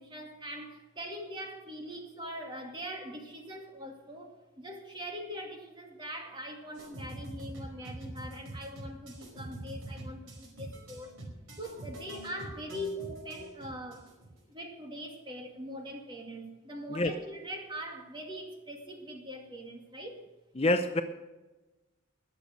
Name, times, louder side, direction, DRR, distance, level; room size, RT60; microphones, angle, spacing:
voice 1, 0.0-4.3 4.6-11.1 11.6-14.0 14.5-20.2, equal, 25° right, 2 dB, 2.2 m, -42 dB
sound 1, 6.7-14.4, right 2 dB, 90° right, 4.9 m, -45 dB
voice 2, 20.6-21.0, left 1 dB, 30° left, 7 dB, 0.7 m, -26 dB
20.5 x 7.0 x 6.4 m, 1.1 s
head